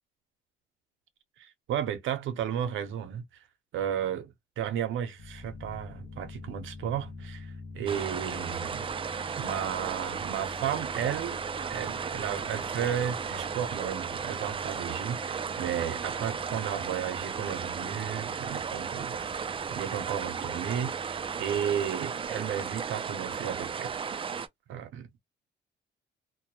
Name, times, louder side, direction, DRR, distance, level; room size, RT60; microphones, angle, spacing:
voice 1, 1.4-3.2 3.7-8.8 9.4-11.4 11.7-19.2 19.7-24.0 24.7-25.2, right 9 dB, 80° right, 0.7 m, -33 dB
sound 1, 5.2-21.6, left 3 dB, 65° left, 0.6 m, -47 dB
sound 2, 7.9-24.5, right 6 dB, 25° right, 0.3 m, -35 dB
2.2 x 2.1 x 2.8 m
cardioid pair, 90°, 20 cm